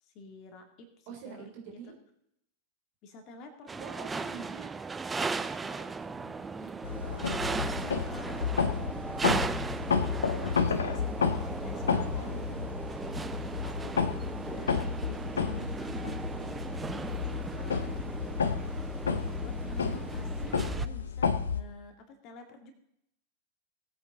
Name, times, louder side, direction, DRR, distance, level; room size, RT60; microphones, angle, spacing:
voice 1, 0.0-1.9 3.0-4.4 7.2-10.0 10.4-16.1 16.3-18.7 19.4-22.7, left 3 dB, 40° left, 6 dB, 2.3 m, -49 dB
voice 2, 1.1-1.9 3.8-4.7 5.1-8.0 15.1-15.3 17.3-17.8 19.5-20.0, right 7 dB, 50° right, 1 dB, 3.6 m, -48 dB
sound 1, 3.7-20.9, right 4 dB, 15° right, 0.5 m, -37 dB
sound 2, 6.8-21.6, left 6 dB, 70° left, 1.0 m, -31 dB
18.5 x 8.8 x 4.0 m, 0.76 s
figure-of-eight pair, 90°, 0 cm